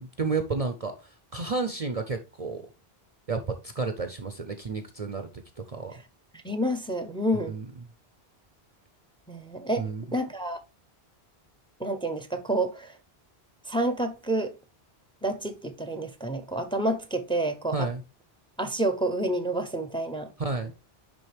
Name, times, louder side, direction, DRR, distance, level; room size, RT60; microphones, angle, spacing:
voice 1, 0.0-2.7 3.3-5.9 7.3-7.7 9.8-10.0 17.7-18.0 20.4-20.7, right 4 dB, 40° right, 0.7 m, -31 dB
voice 2, 6.3-7.6 9.3-9.9 10.1-10.6 11.8-13.0 13.7-14.5 15.2-17.8 18.6-20.3, right 1 dB, 5° left, 0.7 m, -29 dB
10.5 x 3.7 x 3.3 m
omnidirectional pair, 1.0 m